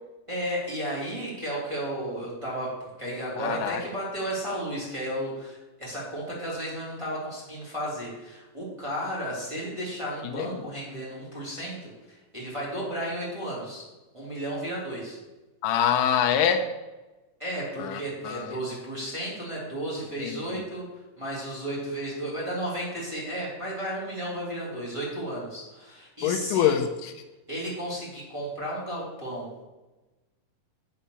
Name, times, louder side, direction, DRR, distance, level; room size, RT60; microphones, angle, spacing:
voice 1, 0.3-13.8 14.1-15.2 17.4-26.7 27.5-29.6, right 1 dB, 10° right, -6 dB, 2.9 m, -33 dB
voice 2, 3.4-3.8 10.2-10.5 15.6-16.6 17.8-18.6 20.2-20.6 26.2-27.1, left 9 dB, 90° left, 5 dB, 2.3 m, -25 dB
8.4 x 5.7 x 6.7 m, 1.1 s
omnidirectional pair, 3.7 m